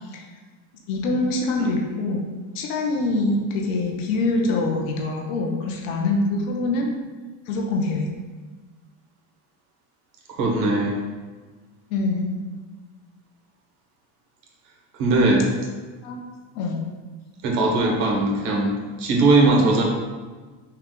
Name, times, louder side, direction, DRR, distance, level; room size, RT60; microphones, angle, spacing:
voice 1, 0.9-2.3 2.5-6.9 7.5-8.1 11.9-12.3 16.0-16.2 16.5-16.8, left 2 dB, 85° left, 0 dB, 0.9 m, -24 dB
voice 2, 10.3-10.9 15.0-15.5 17.4-19.8, right 2 dB, 55° right, -1 dB, 1.1 m, -20 dB
5.8 x 2.4 x 3.7 m, 1.4 s
cardioid pair, 140°, 40 cm